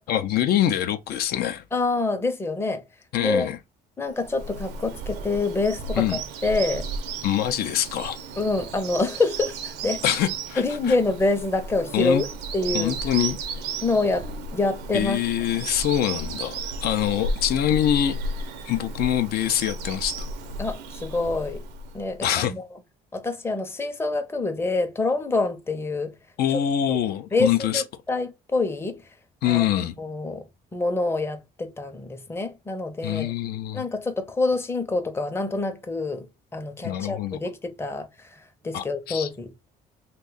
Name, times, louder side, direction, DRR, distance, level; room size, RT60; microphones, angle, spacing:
voice 1, 0.1-1.6 3.1-3.6 6.0-6.2 7.2-8.2 10.0-10.6 10.9-11.0 11.9-12.2 12.7-13.4 14.9-18.2 18.7-20.3 22.2-22.5 26.4-27.8 29.4-29.9 33.0-33.9 36.8-37.4 38.7-39.3, left 11 dB, 65° left, 0.4 m, -24 dB
voice 2, 1.7-2.8 3.2-3.5 4.0-6.9 8.4-10.0 10.6-12.3 12.5-13.0 13.8-15.2 20.6-21.6 21.9-22.6 23.1-26.2 26.9-27.0 27.3-29.1 29.5-29.7 30.0-33.3 33.7-36.3 36.5-39.5, left 3 dB, 15° left, 0.6 m, -26 dB
Bird vocalization bird call bird song, 4.2-22.2, right 3 dB, 85° right, 0.6 m, -34 dB
2.7 x 2.2 x 3.8 m
cardioid pair, 110°, 17 cm